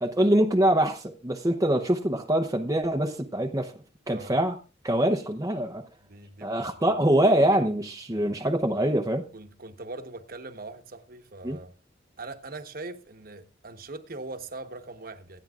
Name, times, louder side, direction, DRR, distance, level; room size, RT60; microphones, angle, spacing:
voice 1, 0.0-3.7 4.1-4.6 4.8-5.8 6.4-9.2 11.4-11.6, right 1 dB, 20° right, 0.7 m, -24 dB
voice 2, 4.1-4.4 6.0-6.9 8.1-8.4 9.3-11.7 12.2-15.4, right 3 dB, 50° right, 1.2 m, -41 dB
26.0 x 8.7 x 2.4 m
head